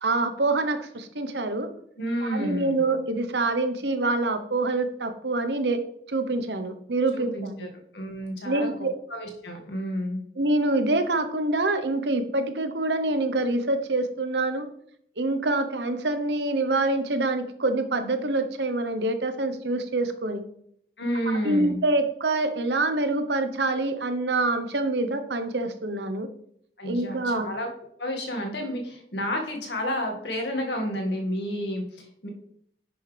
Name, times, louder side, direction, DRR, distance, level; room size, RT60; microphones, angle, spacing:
voice 1, 0.0-1.7 2.3-5.8 6.1-7.7 8.4-8.9 10.4-14.7 15.2-20.4 21.4-26.3 26.8-27.5, right 2 dB, 80° right, 8 dB, 1.1 m, -26 dB
voice 2, 2.0-2.8 7.1-7.7 7.9-8.8 9.1-10.2 21.0-21.8 26.8-27.7 28.0-32.3, equal, 80° left, 2 dB, 2.1 m, -30 dB
10.5 x 6.4 x 3.5 m, 0.67 s
head